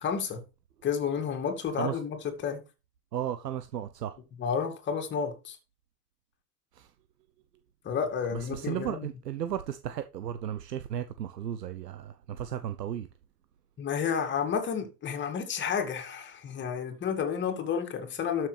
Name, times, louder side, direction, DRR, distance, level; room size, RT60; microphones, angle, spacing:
voice 1, 0.0-0.4 0.8-2.6 4.4-5.6 7.8-9.1 13.8-18.5, left 7 dB, 25° left, 2.2 m, -31 dB
voice 2, 3.1-4.2 6.7-6.9 8.3-13.1, right 10 dB, 80° right, 0.9 m, -35 dB
13.0 x 6.1 x 3.3 m
hypercardioid pair, 110°, 48 cm